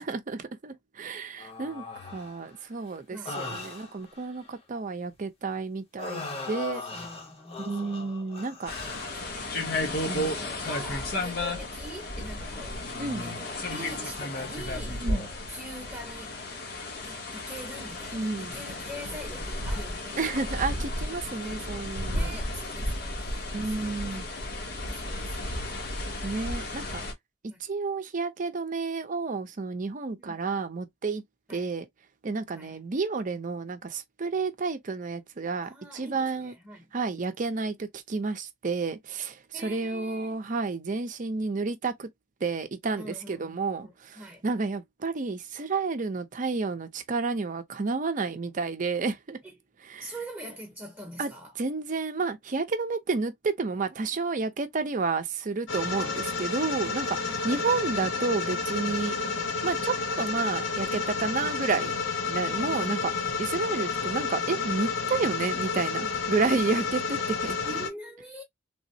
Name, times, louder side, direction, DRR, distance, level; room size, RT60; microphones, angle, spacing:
voice 1, 0.0-6.8 7.6-8.7 10.1-10.4 13.0-13.3 15.0-15.2 18.1-18.5 20.2-22.3 23.5-24.3 26.2-27.0 27.6-31.2 31.5-31.9 32.2-36.5 36.9-42.1 42.4-49.4 49.9-50.1 51.2-51.3 51.6-57.2 57.4-59.1 59.6-61.9 62.3-63.1 63.4-67.6, right 4 dB, 45° right, 0.5 m, -31 dB
sound 1, 1.4-2.5 3.2-4.5 6.0-9.5 10.1-10.4 10.8-11.2 13.0-13.1, left 3 dB, 30° left, 0.7 m, -40 dB
voice 2, 3.1-3.5 6.9-8.3 8.8-16.3 17.0-20.6 22.1-24.2 24.6-25.7 27.4-27.6 30.2-30.5 31.5-31.6 32.5-32.8 35.6-36.9 39.5-40.4 43.0-44.5 49.4-49.6 50.0-51.5 55.9-57.7 59.2-59.5 62.5-63.4 67.6-68.4, right 1 dB, 10° right, 0.8 m, -44 dB
sound 2, 8.7-27.1, left 1 dB, 60° left, 0.9 m, -33 dB
sound 3, 55.7-67.9, left 5 dB, 85° left, 0.8 m, -30 dB
3.3 x 2.0 x 2.6 m
head